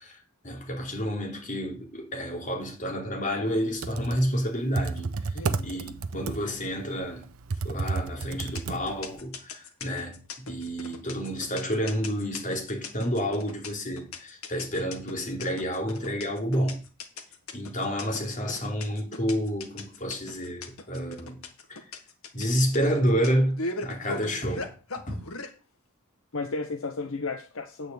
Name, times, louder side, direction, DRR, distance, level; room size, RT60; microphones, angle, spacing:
voice 1, 0.0-5.3 5.6-7.3 7.6-16.8 17.5-21.4 21.7-21.8 22.3-24.7 25.1-25.2, equal, 40° left, 3.1 m, -29 dB
Computer keyboard, 3.6-9.2, right 4 dB, 85° right, 0.8 m, -32 dB
voice 2, 5.3-5.7 26.3-27.9, left 3 dB, 70° left, 0.9 m, -34 dB
sound 1, 8.4-25.5, left 3 dB, 85° left, 1.6 m, -38 dB
9.1 x 5.0 x 7.8 m
head